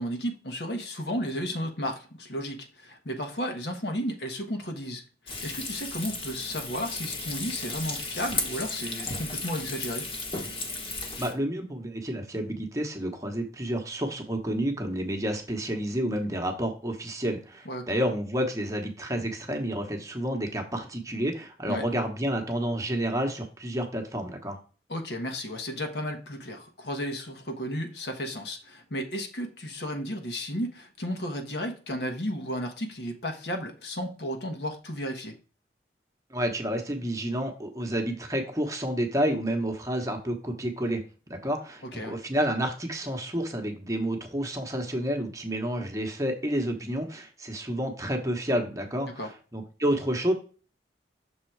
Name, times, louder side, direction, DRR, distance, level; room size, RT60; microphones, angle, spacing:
voice 1, 0.0-5.0 5.4-10.1 17.6-17.9 21.7-21.8 24.9-35.3 41.8-42.2 49.1-49.3, equal, 70° left, 1.2 m, -33 dB
Frying (food), 5.3-11.3, left 3 dB, 30° left, 1.1 m, -34 dB
voice 2, 11.2-24.6 36.3-41.0 41.3-50.3, equal, 20° right, 1.0 m, -30 dB
6.3 x 3.8 x 4.5 m
head